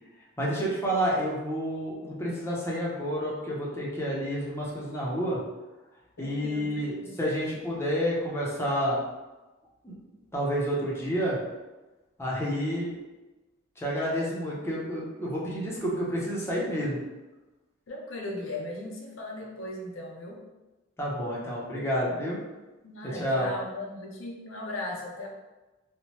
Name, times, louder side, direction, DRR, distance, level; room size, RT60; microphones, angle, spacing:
voice 1, 0.4-5.4 6.2-9.0 9.8-9.9 10.3-11.4 12.2-12.9 13.8-17.0 21.0-22.4 23.0-23.5, equal, 15° left, -6 dB, 0.6 m, -29 dB
voice 2, 6.2-7.2 17.9-20.4 22.8-25.3, left 1 dB, 80° left, 0 dB, 0.5 m, -38 dB
3.0 x 2.1 x 2.8 m, 1.1 s
head